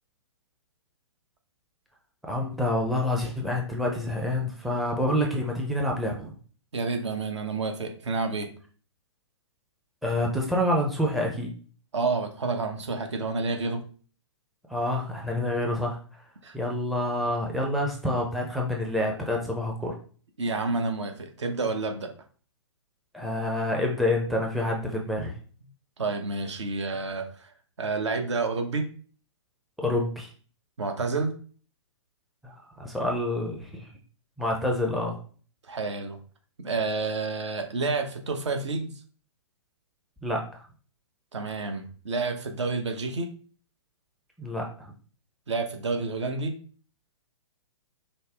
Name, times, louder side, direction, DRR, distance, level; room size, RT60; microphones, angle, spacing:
voice 1, 2.2-6.3 10.0-11.5 14.7-16.3 16.5-20.0 23.1-25.3 29.8-30.3 32.4-33.9 34.4-35.2 40.2-40.6 44.4-44.9, left 1 dB, ahead, -1 dB, 0.5 m, -28 dB
voice 2, 6.7-8.5 11.9-13.8 16.4-16.5 20.4-22.1 26.0-27.5 27.8-28.9 30.8-31.3 35.7-36.2 36.6-38.9 41.3-43.3 45.5-46.6, right 3 dB, 65° right, 6 dB, 0.9 m, -29 dB
5.3 x 2.0 x 3.4 m, 0.42 s
figure-of-eight pair, 125°, 16 cm